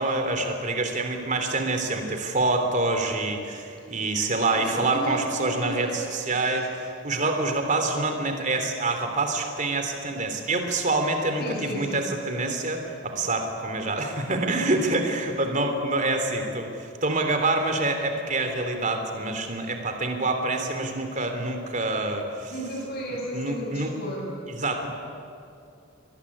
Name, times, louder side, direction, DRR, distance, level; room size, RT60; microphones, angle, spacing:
voice 1, 0.0-22.5 23.3-23.9 24.6-24.9, right 2 dB, 40° right, 5 dB, 3.2 m, -26 dB
voice 2, 4.2-6.6 11.4-12.1 22.5-24.3, equal, 50° left, 0 dB, 6.8 m, -34 dB
24.0 x 20.5 x 10.0 m, 2.5 s
head